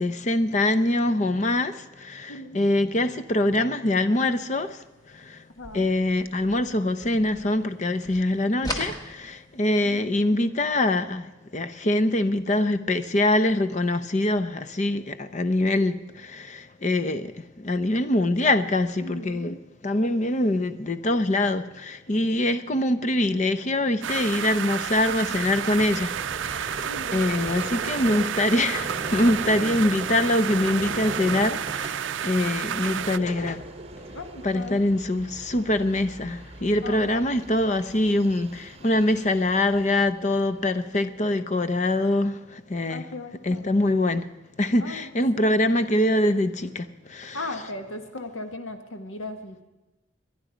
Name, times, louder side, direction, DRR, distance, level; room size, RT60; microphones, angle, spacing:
voice 1, 0.0-4.8 5.1-5.4 5.7-19.6 19.8-33.6 34.4-43.1 43.4-44.3 44.6-47.4, left 1 dB, 35° left, 0.7 m, -24 dB
sound 1, 5.5-7.8 8.0-9.8, equal, 20° left, 1.6 m, -37 dB
voice 2, 5.6-5.9 9.9-10.1 19.0-19.6 25.1-25.4 26.8-27.3 29.5-29.7 34.1-34.8 36.8-37.1 42.9-43.7 44.8-45.1 45.3-45.5 47.3-49.6, left 2 dB, 85° left, 1.3 m, -37 dB
sound 2, 24.0-33.2, right 9 dB, 70° right, 0.4 m, -31 dB
Vehicle, 24.6-40.9, right 2 dB, 30° right, 1.1 m, -40 dB
21.0 x 11.0 x 5.1 m
head